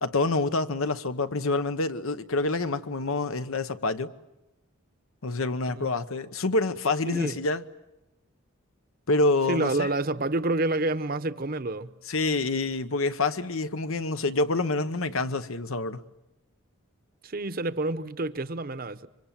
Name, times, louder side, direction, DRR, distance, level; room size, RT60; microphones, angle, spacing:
voice 1, 0.0-4.1 5.2-7.6 9.1-9.9 12.1-16.0, left 3 dB, 80° left, 1.0 m, -27 dB
voice 2, 7.1-7.4 9.5-11.9 17.2-19.1, right 2 dB, 45° right, 0.8 m, -28 dB
26.5 x 25.0 x 7.4 m
head